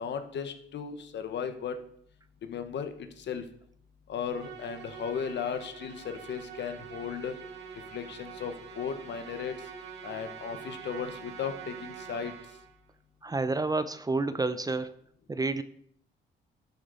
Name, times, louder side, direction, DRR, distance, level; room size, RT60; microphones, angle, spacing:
voice 1, 0.0-1.8 2.4-3.4 4.1-7.3 7.9-9.5 10.0-12.3, left 7 dB, 65° left, 9 dB, 1.3 m, -36 dB
Musical instrument, 4.3-12.8, right 7 dB, 60° right, 2.2 m, -45 dB
voice 2, 13.2-14.9 15.3-15.6, right 3 dB, 20° right, 13 dB, 0.6 m, -29 dB
12.0 x 6.6 x 4.1 m, 0.65 s
cardioid pair, 90°, 20 cm